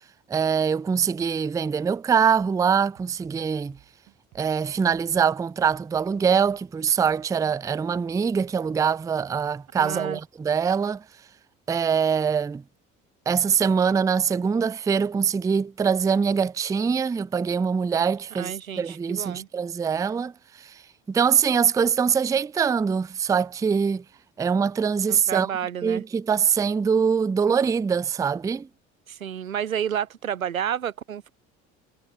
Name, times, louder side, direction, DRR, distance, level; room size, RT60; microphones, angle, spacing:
voice 1, 0.3-3.8 4.3-11.0 11.7-12.6 13.3-20.3 20.6-20.7 21.1-24.0 24.4-25.5 25.8-28.7, right 6 dB, 10° right, 0.4 m, -23 dB
sound 1, 2.4-7.6, right 22 dB, 60° right, 4.0 m, -57 dB
voice 2, 9.8-10.2 18.4-19.5 25.1-26.0 29.1-31.3, right 9 dB, 90° right, 0.9 m, -30 dB
figure-of-eight pair, 60°, 40 cm